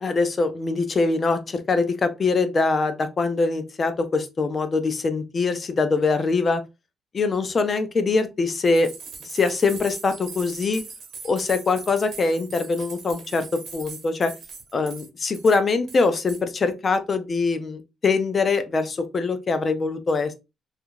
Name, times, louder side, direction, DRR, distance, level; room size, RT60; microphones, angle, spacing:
voice 1, 0.0-6.6 7.1-8.9 9.3-10.8 11.2-14.3 14.7-20.3, left 4 dB, 40° left, 0.5 m, -23 dB
sound 1, 8.6-15.1 15.3-15.6 15.9-16.4, right 5 dB, 65° right, 0.9 m, -40 dB
2.8 x 2.5 x 2.4 m
cardioid pair, 90°, 0 cm